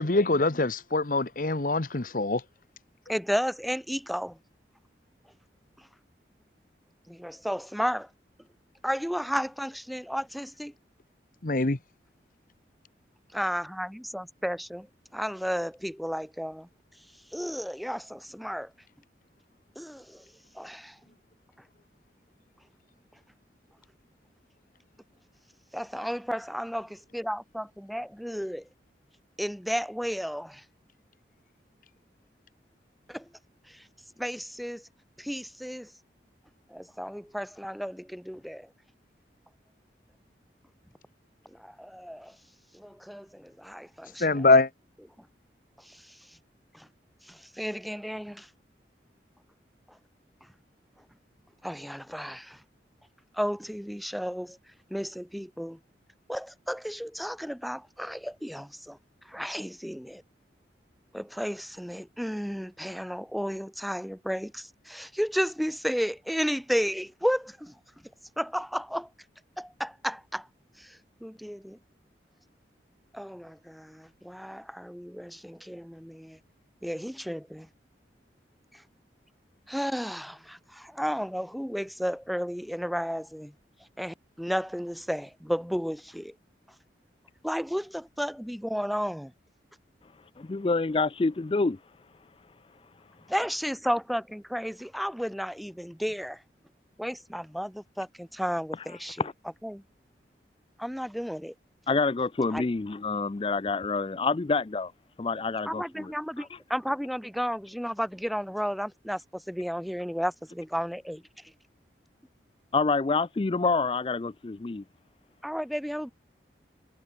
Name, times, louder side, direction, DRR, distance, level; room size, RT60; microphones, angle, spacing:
voice 1, 0.0-2.4 11.4-11.8 44.2-44.7, left 3 dB, 50° left, 1.1 m, -23 dB
voice 2, 3.1-4.4 7.1-8.1 8.8-10.7 13.3-14.9 15.1-16.7 17.3-18.7 19.7-20.2 20.5-21.0 25.7-28.6 29.4-30.6 33.1-33.2 33.7-33.8 34.2-34.8 35.2-35.9 36.7-38.7 41.5-42.3 42.7-44.5 45.8-46.2 46.7-46.9 47.3-48.5 51.6-52.6 53.3-54.6 54.9-55.8 56.3-59.0 59.2-60.2 61.1-67.7 68.4-69.1 69.6-70.5 70.8-71.8 73.1-76.4 76.8-77.7 79.7-83.5 84.0-86.3 87.4-89.3 93.3-96.4 97.0-99.2 99.6-99.8 100.8-101.5 102.5-102.6 105.6-111.2 115.4-116.1, equal, ahead, 1.4 m, -33 dB
voice 3, 90.4-91.8 99.2-99.3 101.9-104.9 105.2-106.1 112.7-114.8, left 3 dB, 30° left, 0.4 m, -27 dB
head